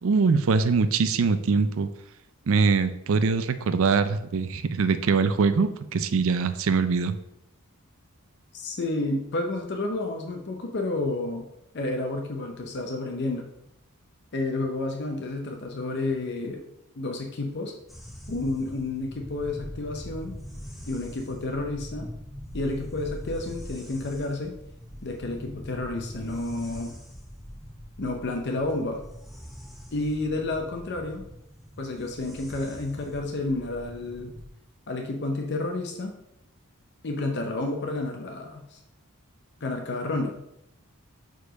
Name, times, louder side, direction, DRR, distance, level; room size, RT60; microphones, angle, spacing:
voice 1, 0.0-1.9 2.5-7.1, right 4 dB, 60° right, 12 dB, 0.4 m, -23 dB
voice 2, 8.5-11.5 11.7-13.5 14.3-16.6 17.0-17.7 18.3-20.3 20.9-22.1 22.5-24.5 25.0-26.9 28.0-29.0 29.9-31.2 31.8-34.3 34.9-36.1 37.0-38.8 39.6-40.3, left 2 dB, 50° left, 2 dB, 0.7 m, -30 dB
sound 1, 17.9-34.5, equal, ahead, 0.8 m, -42 dB
4.6 x 4.6 x 5.1 m, 0.80 s
head